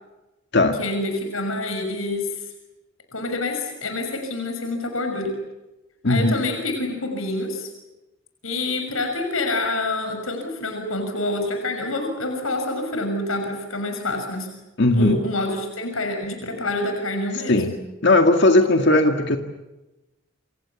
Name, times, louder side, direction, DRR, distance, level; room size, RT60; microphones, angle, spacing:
voice 1, 0.8-2.4 3.1-5.3 6.0-7.7 8.4-14.5 14.9-17.6, left 2 dB, 85° left, 5 dB, 6.2 m, -27 dB
voice 2, 6.0-6.4 14.8-15.2 17.5-17.7 18.0-19.4, left 2 dB, 60° left, 5 dB, 1.9 m, -17 dB
28.0 x 28.0 x 7.2 m, 1.0 s
head